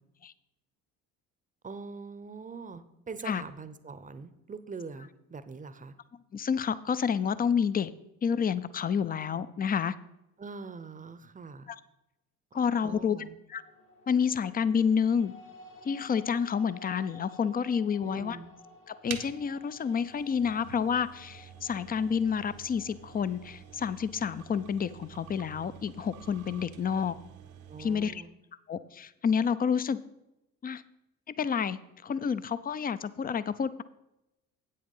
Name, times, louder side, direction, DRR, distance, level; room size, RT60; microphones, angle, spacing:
voice 1, 1.6-5.9 10.4-11.7 12.8-13.4 18.0-18.5 27.7-28.3, right 4 dB, 20° right, 13 dB, 0.8 m, -43 dB
voice 2, 6.3-7.9 8.2-9.9 12.5-13.2 13.5-13.6 14.1-15.3 15.8-18.4 19.0-27.1 27.8-28.2 28.7-30.0 30.6-30.8 31.4-33.8, left 7 dB, 20° left, 15 dB, 0.5 m, -29 dB
sound 1, 13.5-25.7, left 3 dB, 80° left, 1.8 m, -54 dB
sound 2, 19.1-28.2, right 9 dB, 75° right, 1.0 m, -48 dB
8.6 x 6.6 x 5.5 m, 0.90 s
hypercardioid pair, 55°, 42 cm